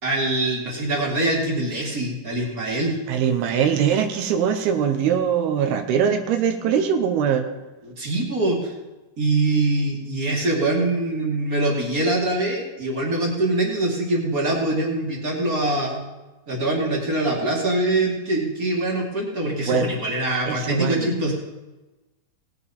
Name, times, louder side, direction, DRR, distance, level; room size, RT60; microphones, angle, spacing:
voice 1, 0.0-3.0 7.8-8.7 9.2-16.0 16.5-21.3, right 2 dB, 30° right, -1 dB, 1.7 m, -23 dB
voice 2, 3.1-7.5 19.7-20.0 20.5-21.1, right 7 dB, 85° right, 6 dB, 2.9 m, -22 dB
18.0 x 8.3 x 4.2 m, 1.1 s
omnidirectional pair, 4.3 m